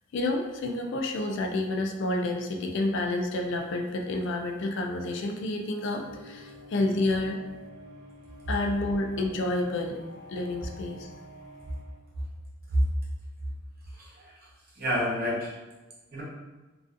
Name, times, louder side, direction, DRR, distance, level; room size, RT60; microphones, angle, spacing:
voice 1, 0.1-7.4 8.5-10.0 10.3-11.1, left 2 dB, 60° left, 3 dB, 0.3 m, -29 dB
sound 1, 5.9-12.0, equal, 90° right, 0.9 m, -48 dB
voice 2, 13.9-14.4 14.7-15.5 16.1-16.2, equal, 45° right, -6 dB, 0.8 m, -28 dB
2.5 x 2.3 x 2.4 m, 1.2 s
head